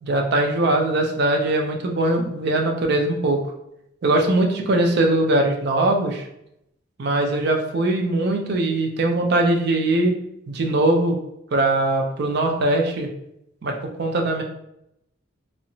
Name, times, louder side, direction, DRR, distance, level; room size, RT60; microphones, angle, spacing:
voice 1, 0.0-3.5 4.0-6.3 7.0-10.1 10.5-11.2 11.5-13.1 13.6-14.4, right 2 dB, 55° right, 3 dB, 0.4 m, -21 dB
2.8 x 2.0 x 2.6 m, 0.79 s
head